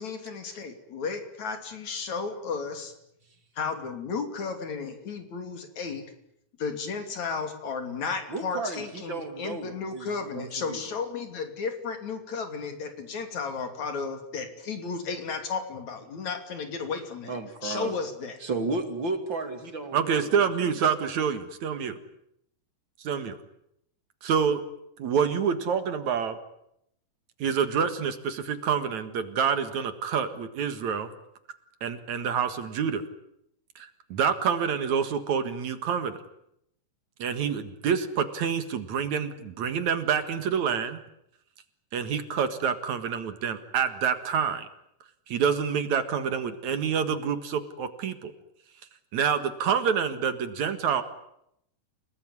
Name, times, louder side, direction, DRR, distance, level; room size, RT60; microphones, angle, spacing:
voice 1, 0.0-2.9 3.6-6.0 6.6-18.4, left 5 dB, 60° left, 7 dB, 4.1 m, -34 dB
voice 2, 8.3-10.8 17.3-17.9 18.4-20.3, right 3 dB, 40° right, 7 dB, 3.0 m, -33 dB
voice 3, 19.9-22.0 23.0-23.4 24.2-24.6 25.0-26.4 27.4-31.1 31.8-33.0 33.8-36.2 37.2-41.0 41.9-44.7 45.3-48.3 49.1-51.0, right 7 dB, 65° right, 10 dB, 2.9 m, -27 dB
29.5 x 19.0 x 9.7 m, 0.78 s
omnidirectional pair, 3.7 m